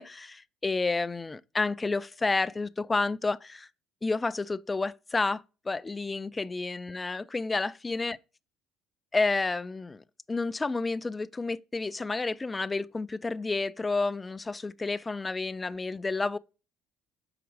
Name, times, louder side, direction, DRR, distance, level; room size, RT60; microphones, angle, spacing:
voice 1, 0.0-3.7 4.0-8.2 9.1-16.4, left 3 dB, 20° left, 0.4 m, -30 dB
7.1 x 4.5 x 3.4 m
figure-of-eight pair, 55°, 0 cm